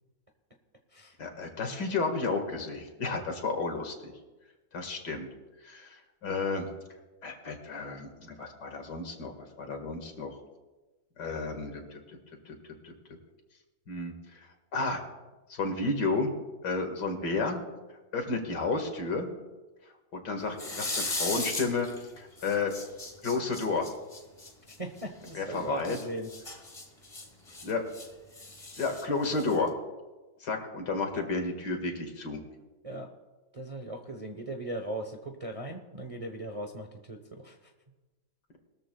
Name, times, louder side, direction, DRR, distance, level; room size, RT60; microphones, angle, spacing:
voice 1, 1.2-4.1 4.7-5.3 5.6-6.7 7.2-10.4 11.2-12.0 12.5-12.6 12.8-12.9 13.9-14.1 14.7-15.0 15.5-16.3 16.6-17.6 18.1-19.3 20.1-21.9 22.2-22.7 23.2-23.9 25.3-26.0 27.6-27.8 28.8-29.7 30.4-32.4, left 3 dB, 70° left, 4 dB, 2.3 m, -32 dB
sound 1, 20.5-22.1 22.4-25.3 25.8-28.1 28.3-29.7, left 2 dB, 20° left, 1.5 m, -37 dB
voice 2, 24.7-26.3 32.8-33.1 33.5-37.7, right 2 dB, 30° right, 3 dB, 0.7 m, -38 dB
20.5 x 13.5 x 2.3 m, 1.2 s
omnidirectional pair, 1.9 m